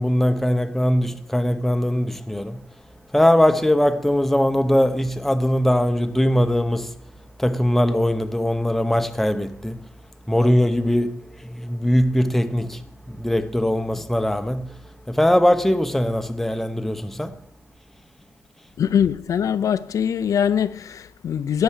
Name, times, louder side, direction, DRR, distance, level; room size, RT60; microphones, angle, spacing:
voice 1, 0.0-2.7 3.1-6.9 7.4-9.9 10.3-14.8 15.1-17.4, left 1 dB, 5° left, 0.8 m, -21 dB
voice 2, 18.8-21.6, left 8 dB, 70° left, 0.6 m, -22 dB
17.0 x 7.6 x 7.4 m
wide cardioid pair, 155°, 6 cm